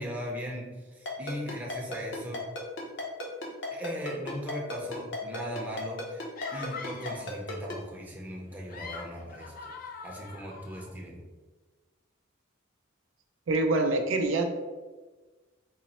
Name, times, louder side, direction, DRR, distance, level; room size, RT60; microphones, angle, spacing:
voice 1, 0.0-2.4 3.7-9.7 10.0-11.2, equal, 10° right, -3 dB, 0.6 m, -38 dB
Ringtone, 1.1-7.7, left 1 dB, 60° left, 0.8 m, -35 dB
sound 1, 6.4-7.3 8.5-10.9, left 4 dB, 45° left, 0.4 m, -43 dB
voice 2, 13.5-14.4, right 2 dB, 70° right, 4 dB, 0.4 m, -25 dB
3.9 x 2.0 x 4.1 m, 1.3 s
head